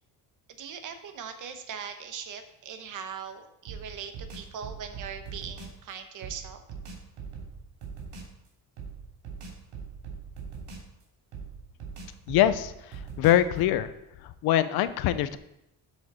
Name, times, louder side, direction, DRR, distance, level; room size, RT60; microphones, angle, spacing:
voice 1, 0.5-6.6, right 7 dB, 55° right, 7 dB, 1.2 m, -40 dB
sound 1, 3.7-5.8 6.2-8.4 8.8-11.0 11.3-13.6, right 5 dB, 75° right, 3.4 m, -41 dB
voice 2, 12.3-12.7 13.2-13.9 14.4-15.4, left 12 dB, 75° left, 13 dB, 0.7 m, -23 dB
12.5 x 5.2 x 4.3 m, 0.84 s
cardioid pair, 150°, 37 cm